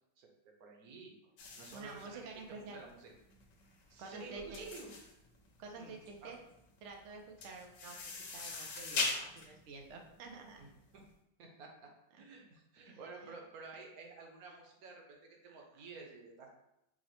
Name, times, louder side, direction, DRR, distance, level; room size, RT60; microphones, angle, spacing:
voice 1, 0.6-1.1 1.6-2.2 2.5-3.1 3.9-4.9 5.8-6.0 6.2-6.3 10.6-10.7 11.4-11.9 12.2-16.5, right 4 dB, 60° right, 1 dB, 1.1 m, -51 dB
sound 1, 1.4-11.0, left 3 dB, 75° left, 1.4 m, -42 dB
voice 2, 1.7-2.8 4.0-4.7 5.6-6.4 6.8-10.6 12.1-12.2 12.9-13.3 15.5-15.6, right 3 dB, 80° right, 2 dB, 0.6 m, -49 dB
4.8 x 2.1 x 4.2 m, 0.83 s
omnidirectional pair, 1.9 m